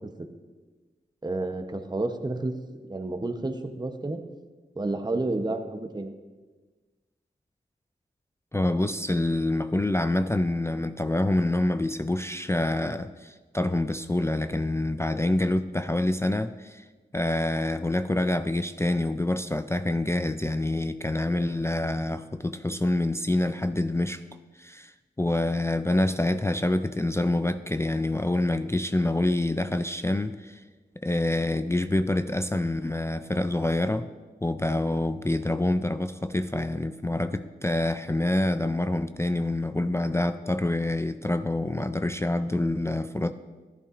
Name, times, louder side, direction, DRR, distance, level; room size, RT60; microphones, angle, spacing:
voice 1, 1.2-2.5 2.9-4.2 4.8-6.1, right 2 dB, 20° right, 6 dB, 0.8 m, -30 dB
voice 2, 8.5-16.8 17.1-24.2 24.6-24.9 25.2-30.6 31.0-34.1 34.4-43.3, left 1 dB, 15° left, 9 dB, 0.3 m, -26 dB
15.0 x 11.0 x 2.5 m, 1.3 s
wide cardioid pair, 80°, 18 cm